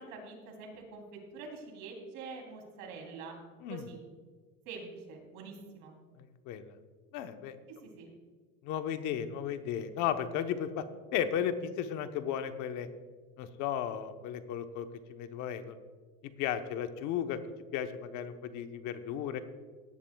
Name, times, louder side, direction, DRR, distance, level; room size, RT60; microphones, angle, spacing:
voice 1, 0.0-3.4 3.7-4.0 4.6-5.9 7.8-8.1, right 4 dB, 90° right, 1 dB, 3.2 m, -45 dB
voice 2, 6.2-6.7 7.1-7.6 8.6-10.8 11.1-12.9 13.4-15.8 16.4-17.4 17.7-19.4, left 9 dB, 75° left, 9 dB, 1.0 m, -35 dB
17.5 x 11.0 x 2.3 m, 1.5 s
cardioid pair, 120°, 30 cm